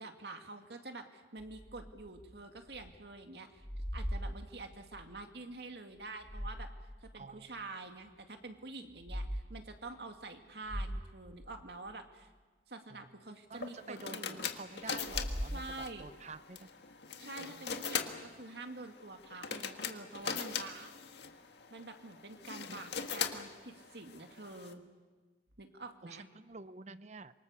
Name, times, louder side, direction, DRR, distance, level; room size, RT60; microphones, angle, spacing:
voice 1, 0.0-3.6 3.9-6.7 7.0-12.3 12.7-14.4 15.5-16.1 17.2-20.9 21.7-24.8 25.6-26.3, right 2 dB, 70° right, 5 dB, 2.3 m, -47 dB
sound 1, 1.4-3.0 3.3-5.1 6.0-7.0 7.5-7.6 8.9-9.3 9.7-9.9 10.3-10.4 10.6-11.9 14.9-16.1, equal, ahead, 4.5 m, -41 dB
voice 2, 7.1-7.7 12.9-13.1 13.5-16.7 17.5-17.6 22.6-22.8 26.0-27.4, right 3 dB, 40° right, 14 dB, 0.8 m, -49 dB
sound 2, 13.5-24.7, left 7 dB, 75° left, 1.7 m, -41 dB
26.5 x 24.0 x 6.9 m, 1.4 s
head